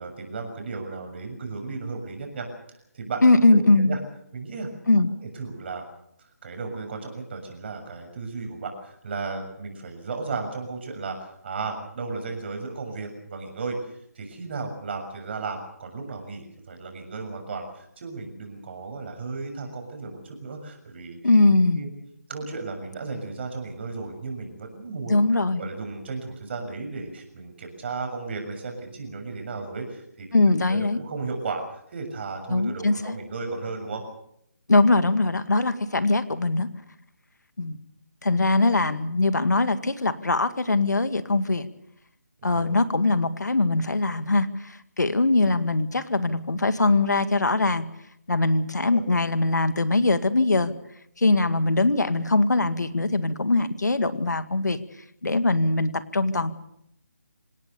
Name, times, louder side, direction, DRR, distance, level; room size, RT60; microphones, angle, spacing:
voice 1, 0.0-2.5 2.9-4.0 4.3-4.7 5.3-5.9 6.4-21.2 21.7-21.9 22.3-25.3 25.6-34.0 42.4-42.7 48.9-49.0, right 4 dB, 40° right, 4 dB, 6.8 m, -35 dB
voice 2, 3.2-3.9 4.9-5.1 21.2-21.9 25.1-25.6 30.3-31.0 32.5-33.2 34.7-36.7 37.6-37.8 38.2-41.7 42.4-47.8 48.3-50.7 51.2-54.8 55.2-56.5, left 2 dB, 85° left, 11 dB, 2.0 m, -21 dB
27.0 x 18.0 x 7.0 m, 0.74 s
figure-of-eight pair, 160°, 9 cm